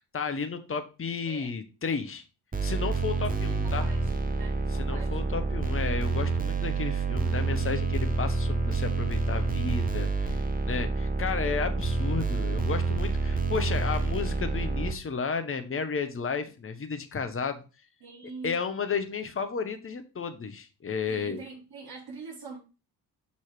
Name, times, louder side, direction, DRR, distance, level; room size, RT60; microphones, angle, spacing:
voice 1, 0.0-2.2 2.6-3.9 4.7-17.6 18.4-21.4, left 5 dB, 25° left, 1.1 m, -33 dB
sound 1, 2.5-14.9, right 3 dB, 15° right, 1.3 m, -28 dB
voice 2, 3.3-5.2 18.0-18.7 21.1-22.6, right 4 dB, 50° right, 3.9 m, -44 dB
6.3 x 4.2 x 4.8 m
figure-of-eight pair, 40°, 50 cm